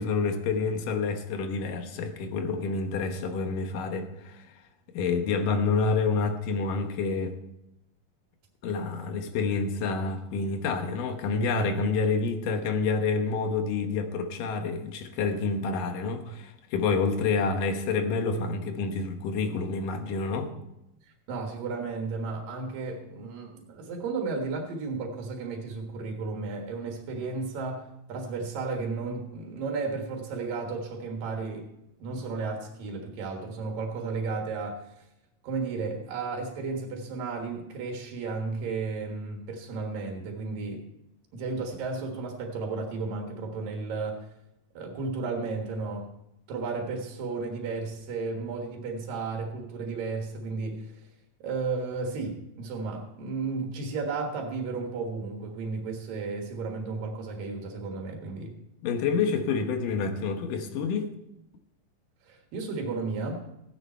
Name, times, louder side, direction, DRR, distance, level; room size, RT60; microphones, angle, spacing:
voice 1, 0.0-4.4 4.9-7.4 8.6-20.5 58.8-61.1, left 4 dB, 75° left, 2.8 m, -28 dB
voice 2, 21.3-31.7 32.0-35.0 35.4-40.9 41.3-44.2 44.7-46.1 46.5-50.9 51.4-58.5 62.3-63.5, right 4 dB, 85° right, 3.3 m, -33 dB
16.0 x 9.7 x 4.4 m
omnidirectional pair, 3.9 m